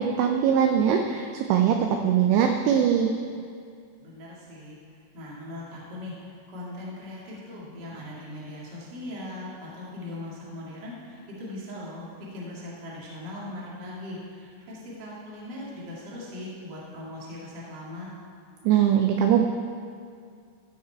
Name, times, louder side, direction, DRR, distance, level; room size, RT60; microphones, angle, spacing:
voice 1, 0.0-1.8 2.0-3.1 18.6-19.5, right 9 dB, 85° right, 4 dB, 2.5 m, -21 dB
voice 2, 4.0-4.8 5.1-18.1, left 1 dB, 50° right, -6 dB, 1.2 m, -39 dB
14.5 x 6.7 x 4.6 m, 2.2 s
omnidirectional pair, 5.6 m